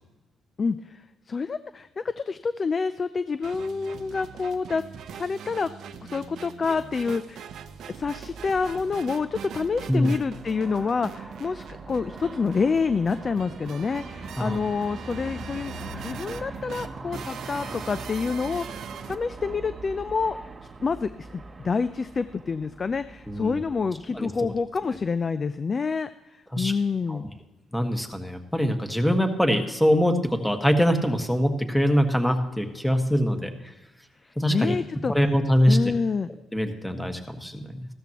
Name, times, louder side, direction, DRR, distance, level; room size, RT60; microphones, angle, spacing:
voice 1, 0.6-4.8 5.1-5.7 6.0-7.5 7.9-20.4 20.8-27.3 34.5-35.1 35.7-36.3, left 5 dB, 40° left, 13 dB, 0.4 m, -28 dB
sound 1, 3.4-19.1, right 8 dB, 70° right, 0.7 m, -41 dB
Aircraft, 7.8-25.0, right 2 dB, 30° right, 1.0 m, -42 dB
voice 2, 23.3-23.6 24.1-24.3 26.5-26.7 27.1-27.2 27.7-33.7 34.4-34.7 35.1-35.8 36.5-37.9, equal, 5° left, 5 dB, 1.5 m, -23 dB
15.5 x 13.0 x 3.0 m, 1.0 s
cardioid pair, 90°, 0 cm